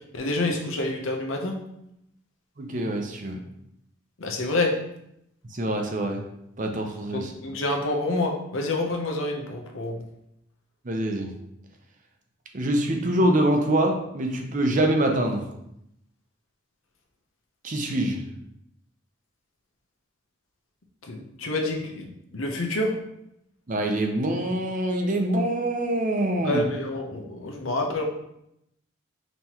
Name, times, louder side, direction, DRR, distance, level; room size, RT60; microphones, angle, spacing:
voice 1, 0.1-1.6 4.2-4.7 7.1-10.0 21.1-22.9 26.4-28.0, left 2 dB, 85° left, 2 dB, 0.8 m, -28 dB
voice 2, 2.6-3.4 5.5-6.2 6.6-7.3 10.8-11.3 12.5-15.4 17.6-18.2 23.7-26.6, right 1 dB, 40° right, 3 dB, 0.6 m, -25 dB
5.5 x 3.0 x 2.9 m, 0.80 s
head